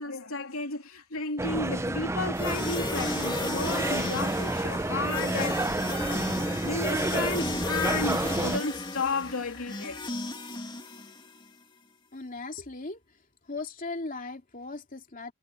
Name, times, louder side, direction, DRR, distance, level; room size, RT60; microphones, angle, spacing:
voice 1, 0.0-5.6 6.6-10.1, left 3 dB, 80° left, 3.2 m, -33 dB
sound 1, 1.4-8.6, right 2 dB, 15° right, 0.6 m, -30 dB
sound 2, 2.3-11.5, left 2 dB, 20° left, 2.6 m, -35 dB
voice 2, 12.1-13.0 13.5-15.3, left 3 dB, 40° left, 2.9 m, -38 dB
head